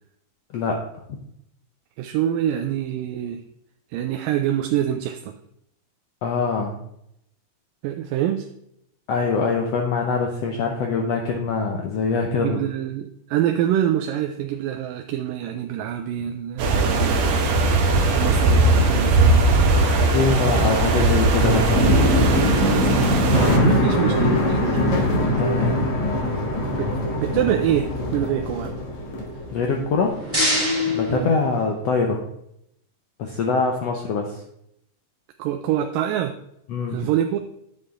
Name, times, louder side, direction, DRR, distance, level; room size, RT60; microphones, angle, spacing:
voice 1, 2.0-3.4 3.9-5.4 7.8-8.5 12.3-20.2 23.6-25.0 26.7-28.8 31.1-31.3 35.4-36.4 36.9-37.4, right 11 dB, 80° right, 6 dB, 2.2 m, -26 dB
voice 2, 6.2-6.7 9.1-12.6 19.7-21.9 25.4-25.7 29.5-30.2 30.9-32.2 33.2-34.4 36.7-37.0, left 4 dB, 75° left, 2 dB, 1.5 m, -23 dB
sound 1, 16.6-23.6, right 2 dB, 60° right, 2.0 m, -19 dB
sound 2, 21.3-30.1 30.3-31.2, left 1 dB, 50° left, 2.5 m, -23 dB
sound 3, 29.8-32.0, right 1 dB, 5° right, 2.8 m, -27 dB
9.9 x 7.8 x 3.7 m, 0.75 s
omnidirectional pair, 4.0 m